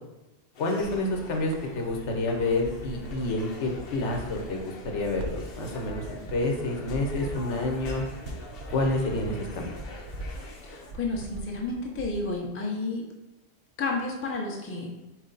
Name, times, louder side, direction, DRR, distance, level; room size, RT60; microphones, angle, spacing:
sound 1, 0.5-10.9, left 2 dB, 60° left, 0.8 m, -46 dB
voice 1, 0.6-8.0 8.7-9.7, left 2 dB, 80° left, 2 dB, 1.1 m, -29 dB
sound 2, 0.8-12.4, right 2 dB, 60° right, 0.6 m, -41 dB
voice 2, 10.6-13.0 13.8-15.0, left 3 dB, 20° left, 0 dB, 0.4 m, -31 dB
4.3 x 3.1 x 3.9 m, 1.0 s
omnidirectional pair, 1.2 m